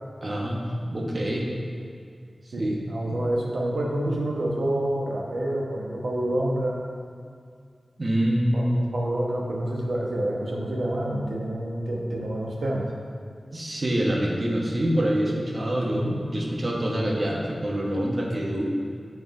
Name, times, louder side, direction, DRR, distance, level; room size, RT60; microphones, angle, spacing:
voice 1, 0.2-1.5 2.6-2.8 3.1-3.2 8.0-8.8 13.5-18.7, equal, 45° right, -2 dB, 1.1 m, -26 dB
voice 2, 2.5-6.8 8.5-12.9 15.9-16.2, right 1 dB, 90° right, -2 dB, 1.1 m, -28 dB
7.8 x 4.0 x 4.8 m, 2.2 s
wide cardioid pair, 90°, 0 cm